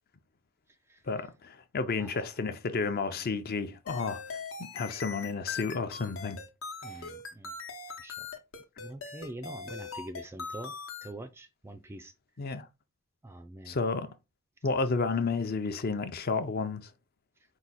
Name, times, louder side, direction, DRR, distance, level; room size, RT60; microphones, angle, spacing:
voice 1, 1.1-4.4 4.7-6.4 12.4-12.7 13.7-14.1 14.6-16.9, left 4 dB, 45° left, 0.5 m, -31 dB
sound 1, 3.9-11.1, left 5 dB, 65° left, 0.8 m, -41 dB
voice 2, 6.8-7.6 8.0-8.3 8.8-10.7 11.0-12.1 13.2-13.8, right 1 dB, 10° right, 0.3 m, -44 dB
4.7 x 2.3 x 4.0 m
head